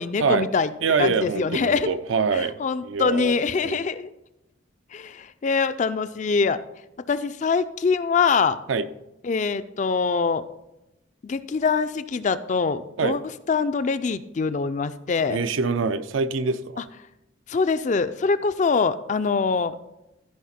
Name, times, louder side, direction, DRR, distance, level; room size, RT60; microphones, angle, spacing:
voice 1, 0.0-0.7 1.0-1.9 2.3-4.1 4.9-6.6 7.1-8.6 9.2-10.4 11.2-13.2 13.5-15.4 17.5-19.7, left 5 dB, 40° left, 13 dB, 0.3 m, -24 dB
voice 2, 0.8-3.8 8.7-8.8 13.0-13.2 15.3-16.8, right 4 dB, 80° right, 11 dB, 0.5 m, -25 dB
13.5 x 5.0 x 4.2 m, 0.92 s
head